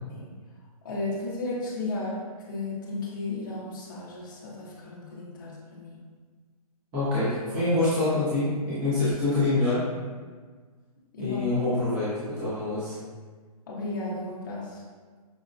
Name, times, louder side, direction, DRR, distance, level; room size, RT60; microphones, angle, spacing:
voice 1, 0.8-6.0 11.1-11.5 13.7-14.8, left 2 dB, 30° left, -6 dB, 0.7 m, -34 dB
voice 2, 6.9-9.8 11.2-13.0, left 2 dB, 10° right, -12 dB, 0.7 m, -26 dB
5.1 x 2.1 x 2.4 m, 1.5 s
hypercardioid pair, 175°, 20 cm